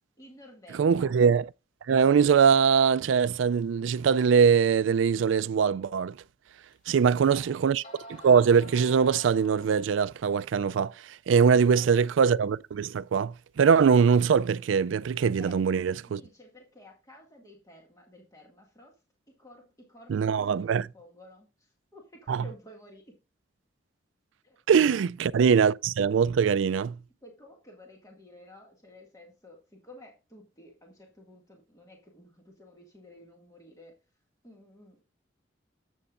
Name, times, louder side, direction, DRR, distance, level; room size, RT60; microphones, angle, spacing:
voice 1, 0.2-1.1 6.9-7.6 11.7-12.0 15.3-15.6 16.1-18.9 19.4-23.2 24.4-24.6 24.9-25.0 27.2-33.9 34.4-35.0, left 1 dB, 20° left, 2.0 m, -52 dB
voice 2, 0.8-1.5 1.9-6.1 6.9-7.8 8.1-10.9 11.3-16.2 20.1-20.9 22.3-22.4 24.7-26.9, right 6 dB, 90° right, 0.4 m, -22 dB
sound 1, 6.7-6.8 7.5-7.6 7.8-10.3, equal, 40° left, 3.0 m, -49 dB
11.5 x 7.9 x 2.5 m
head